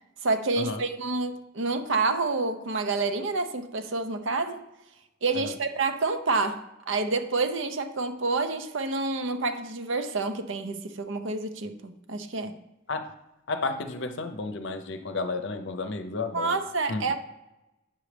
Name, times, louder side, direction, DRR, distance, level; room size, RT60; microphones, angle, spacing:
voice 1, 0.2-4.6 5.2-12.5 16.3-17.2, right 3 dB, 65° right, 8 dB, 0.7 m, -28 dB
voice 2, 13.5-16.6 16.9-17.0, left 3 dB, 60° left, 8 dB, 0.7 m, -32 dB
8.9 x 6.2 x 3.3 m, 0.93 s
head